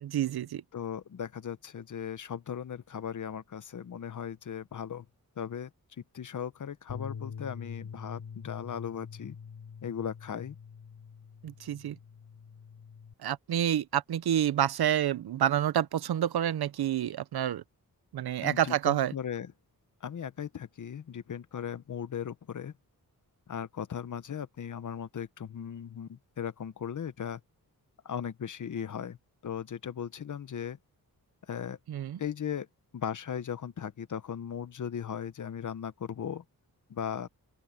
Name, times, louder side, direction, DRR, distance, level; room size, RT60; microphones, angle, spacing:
voice 1, 0.0-0.6 11.4-12.0 13.2-17.6 18.1-19.1 31.9-32.2, right 10 dB, 80° right, 0.7 m, -28 dB
voice 2, 0.7-5.1 5.4-5.7 6.0-9.4 9.8-10.6 18.4-19.5 20.0-22.7 23.5-27.4 28.0-29.2 29.4-30.8 31.5-31.8 32.2-32.7 32.9-36.4 36.9-37.3, left 8 dB, 55° left, 0.9 m, -37 dB
Bass guitar, 6.9-13.1, left 6 dB, 75° left, 5.7 m, -44 dB
open air
wide cardioid pair, 150°, 37 cm